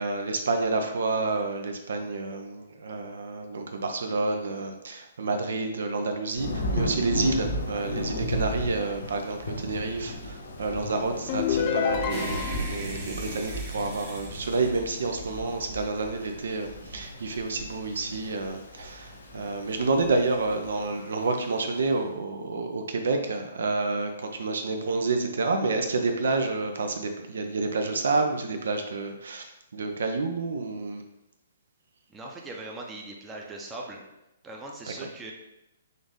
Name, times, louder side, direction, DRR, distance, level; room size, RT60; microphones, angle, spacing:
voice 1, 0.0-31.0, right 3 dB, 75° right, 5 dB, 0.5 m, -29 dB
Thunder / Rain, 6.3-21.9, equal, 70° left, 1.0 m, -35 dB
sound 1, 11.3-12.8, left 7 dB, 35° left, 0.4 m, -27 dB
sound 2, 12.1-15.6, right 3 dB, 35° right, 0.9 m, -39 dB
voice 2, 32.1-34.0 34.4-35.3, right 2 dB, 15° right, 0 dB, 0.6 m, -40 dB
3.9 x 2.5 x 3.6 m, 0.90 s
hypercardioid pair, 140°, 0 cm